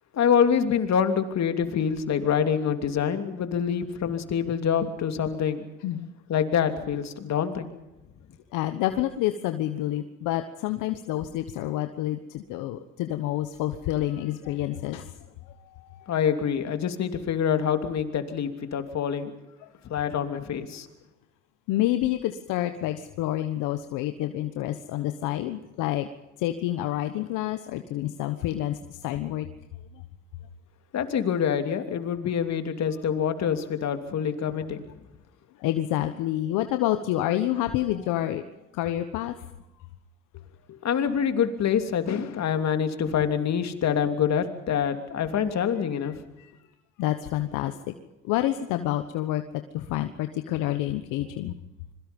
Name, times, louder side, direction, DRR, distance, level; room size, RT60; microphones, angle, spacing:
voice 1, 0.1-5.6 6.3-7.7 16.1-19.3 19.8-20.9 30.9-34.9 40.7-46.2, left 8 dB, 60° left, 8 dB, 3.0 m, -26 dB
voice 2, 8.5-15.1 15.8-16.1 21.7-26.1 26.4-29.5 35.6-38.4 38.7-39.3 46.4-46.5 47.0-47.9 48.3-49.4 49.7-51.5, left 13 dB, 80° left, 8 dB, 1.3 m, -28 dB
26.5 x 22.5 x 5.4 m, 0.98 s
supercardioid pair, 65°, 31 cm